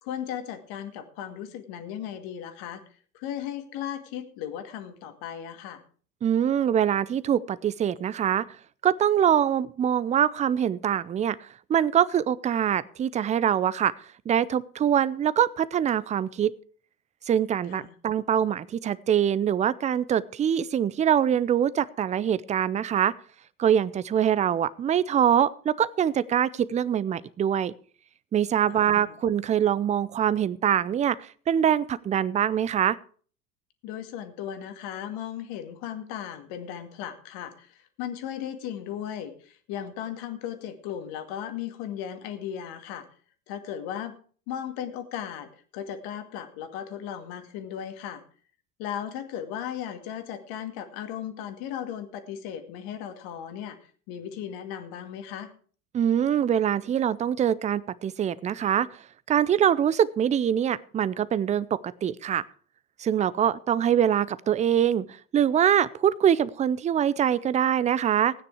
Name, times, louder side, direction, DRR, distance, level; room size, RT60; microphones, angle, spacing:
voice 1, 0.0-2.8 3.1-5.8 17.7-18.0 28.7-29.1 33.8-43.1 43.5-44.1 44.5-48.2 48.8-53.8 54.1-55.5, left 9 dB, 50° left, 8 dB, 2.3 m, -36 dB
voice 2, 6.2-8.4 8.8-11.4 11.7-13.9 14.3-16.5 17.3-23.1 23.6-27.7 28.3-31.2 31.5-33.0 55.9-58.9 59.3-62.4 63.0-65.1 65.3-68.3, right 9 dB, 15° right, 17 dB, 0.5 m, -24 dB
16.0 x 9.7 x 4.8 m, 0.43 s
hypercardioid pair, 85°, 46 cm